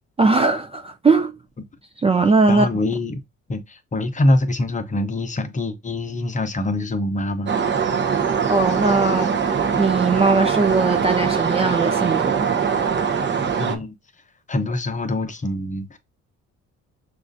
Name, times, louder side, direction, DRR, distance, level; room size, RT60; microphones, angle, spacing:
voice 1, 0.2-1.4 2.0-2.7 8.5-9.3 9.8-12.5, right 3 dB, 20° right, 0.4 m, -19 dB
voice 2, 2.5-3.2 3.5-7.5 9.7-9.9 13.6-13.9 14.5-16.0, left 2 dB, 25° left, 0.7 m, -24 dB
sound 1, 7.5-13.8, right 6 dB, 40° right, 0.7 m, -22 dB
6.0 x 2.4 x 2.6 m
cardioid pair, 90°, 30 cm